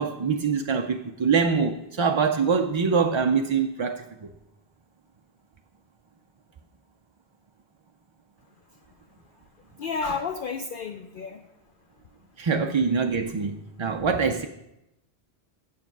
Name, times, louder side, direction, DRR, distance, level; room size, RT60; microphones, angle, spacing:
voice 1, 0.0-4.3 12.4-14.5, right 5 dB, 45° right, 4 dB, 0.4 m, -24 dB
voice 2, 9.8-11.4, left 4 dB, 60° left, 5 dB, 0.7 m, -31 dB
7.9 x 7.1 x 6.0 m, 0.85 s
omnidirectional pair, 1.1 m